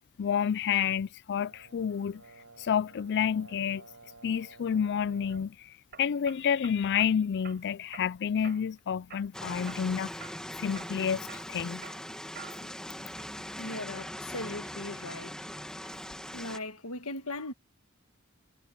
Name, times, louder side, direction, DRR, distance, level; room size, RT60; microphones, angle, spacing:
voice 1, 0.2-2.2 2.6-3.8 4.2-10.1 10.6-11.8, left 7 dB, 50° left, 0.4 m, -29 dB
Brass instrument, 1.4-5.6, right 3 dB, 65° right, 7.3 m, -54 dB
sound 1, 5.0-5.4 5.9-7.1 7.4-8.1 8.4-8.8 9.1-9.9 10.2-10.4 10.7-12.8 13.2-13.7, right 7 dB, 50° right, 6.2 m, -49 dB
sound 2, 9.3-16.6, equal, 5° left, 2.1 m, -41 dB
voice 2, 13.6-15.4 16.3-17.5, left 2 dB, 70° left, 1.8 m, -38 dB
head